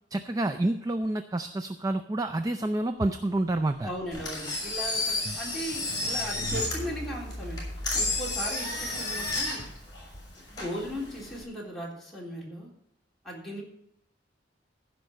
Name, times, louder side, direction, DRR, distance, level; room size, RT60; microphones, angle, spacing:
voice 1, 0.1-3.9 5.3-5.4, right 1 dB, 20° right, 7 dB, 0.4 m, -28 dB
voice 2, 3.8-7.6 7.9-9.6 10.5-12.7 13.2-13.6, equal, ahead, -5 dB, 3.5 m, -37 dB
Engine, 4.1-11.4, left 2 dB, 25° left, 5.6 m, -32 dB
sound 1, 4.7-10.0, left 1 dB, 85° right, 4.9 m, -40 dB
15.5 x 5.3 x 6.5 m, 0.77 s
head